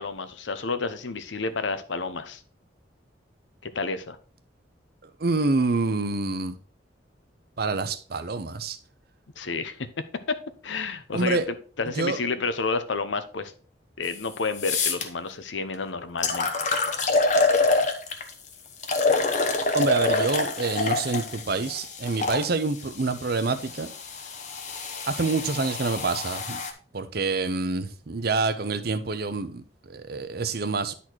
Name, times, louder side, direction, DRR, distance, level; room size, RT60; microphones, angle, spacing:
voice 1, 0.0-2.4 3.6-4.2 9.4-9.8 10.3-10.4 10.6-13.5 14.0-16.5, left 4 dB, 85° left, 0.9 m, -30 dB
voice 2, 5.2-6.6 7.6-8.8 11.1-11.5 11.9-12.2 19.7-23.9 25.1-26.6 26.9-30.9, right 3 dB, 55° right, 0.7 m, -27 dB
sound 1, 14.1-14.2 14.6-15.0 15.7-15.8 16.2-18.3 18.8-22.4 23.3-26.7, left 3 dB, 40° left, 1.0 m, -26 dB
10.0 x 4.2 x 4.5 m
head